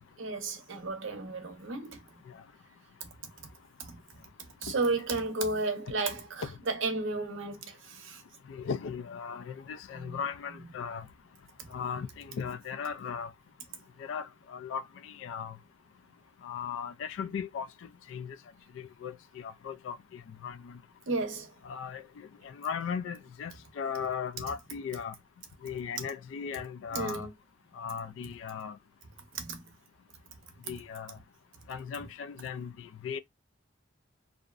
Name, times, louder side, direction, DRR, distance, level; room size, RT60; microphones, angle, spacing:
voice 1, 0.2-2.0 3.8-4.0 4.6-8.2 9.9-10.2 21.1-21.5 26.9-27.3 29.3-29.6, right 3 dB, 70° right, 0.6 m, -33 dB
voice 2, 8.5-11.1 11.7-13.3 14.0-15.6 16.4-17.7 18.1-18.4 18.7-20.8 21.6-25.1 25.6-27.3 27.7-28.8 30.7-31.2 31.7-33.2, left 7 dB, 70° left, 0.3 m, -37 dB
2.6 x 2.0 x 2.3 m
head